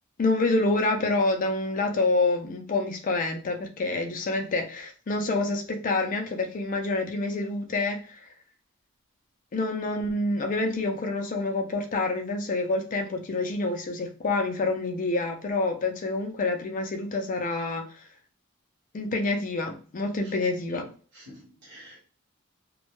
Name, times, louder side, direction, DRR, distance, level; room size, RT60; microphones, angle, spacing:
voice 1, 0.2-8.3 9.5-18.0 18.9-20.9, left 2 dB, 35° left, 0.4 m, -27 dB
voice 2, 21.1-22.0, equal, 55° right, 1.1 m, -49 dB
2.2 x 2.1 x 3.0 m
head